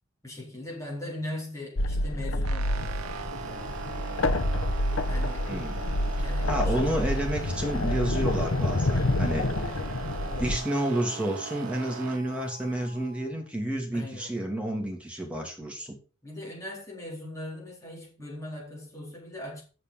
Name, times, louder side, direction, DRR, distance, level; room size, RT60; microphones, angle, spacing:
voice 1, 0.2-4.0 5.1-5.5 6.2-6.9 8.9-9.3 13.9-14.3 16.2-19.6, left 1 dB, 15° left, 4.1 m, -40 dB
sound 1, 1.8-10.6, left 1 dB, 70° left, 0.8 m, -28 dB
sound 2, 2.4-12.2, right 6 dB, 90° right, 0.7 m, -40 dB
Harmonica, 2.5-13.6, right 2 dB, 35° right, 2.3 m, -48 dB
voice 2, 5.4-5.8 6.2-9.5 10.4-16.0, right 1 dB, 5° right, 2.6 m, -30 dB
7.6 x 6.5 x 5.5 m
head